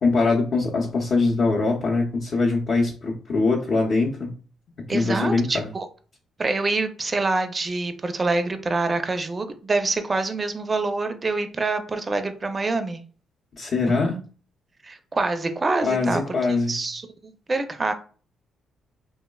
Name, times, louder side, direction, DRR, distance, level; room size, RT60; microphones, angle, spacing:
voice 1, 0.0-4.4 4.9-5.7 13.6-14.2 15.8-16.8, left 3 dB, 50° left, 0.6 m, -22 dB
voice 2, 4.9-5.9 6.4-13.0 14.8-16.2 16.7-17.9, right 3 dB, 30° right, 0.4 m, -26 dB
3.1 x 2.1 x 2.2 m
cardioid pair, 90°, 0 cm